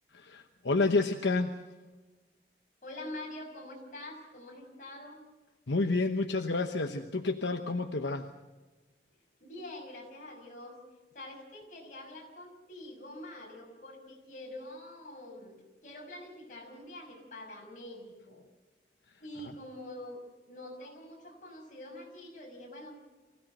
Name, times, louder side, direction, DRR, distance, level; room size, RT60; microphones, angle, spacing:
voice 1, 0.1-1.6 5.7-8.3, left 3 dB, 80° left, 6 dB, 1.0 m, -29 dB
voice 2, 2.8-5.2 9.4-10.8 11.1-18.4 19.2-20.2 20.5-22.9, left 1 dB, 45° left, 0 dB, 6.0 m, -45 dB
24.5 x 16.0 x 7.9 m, 1.2 s
head